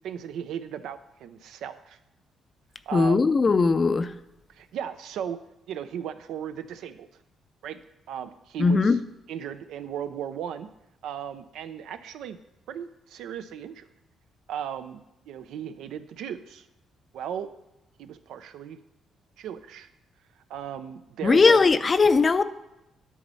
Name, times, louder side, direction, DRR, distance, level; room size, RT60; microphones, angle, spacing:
voice 1, 0.0-2.0 2.9-3.2 4.6-5.4 5.7-7.1 7.6-7.8 8.1-9.0 9.3-10.7 11.0-12.4 12.7-13.9 14.5-16.7 17.1-17.5 18.0-18.8 19.4-19.9 20.5-21.6, right 9 dB, 80° right, 11 dB, 0.5 m, -36 dB
voice 2, 2.9-4.1 8.6-9.0 21.2-22.4, left 4 dB, 35° left, 13 dB, 0.4 m, -19 dB
9.9 x 4.1 x 5.4 m, 0.90 s
cardioid pair, 90°, 0 cm